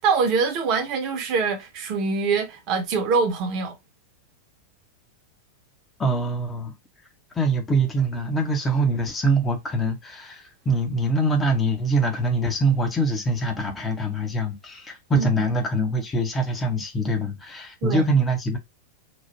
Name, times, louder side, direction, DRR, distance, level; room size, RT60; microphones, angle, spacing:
voice 1, 0.0-3.8 15.1-15.4 17.8-18.0, right 5 dB, 40° right, 1.0 m, -24 dB
voice 2, 6.0-6.7 7.3-18.6, right 2 dB, 15° left, 0.9 m, -24 dB
3.1 x 2.3 x 4.2 m
figure-of-eight pair, 90°, 0 cm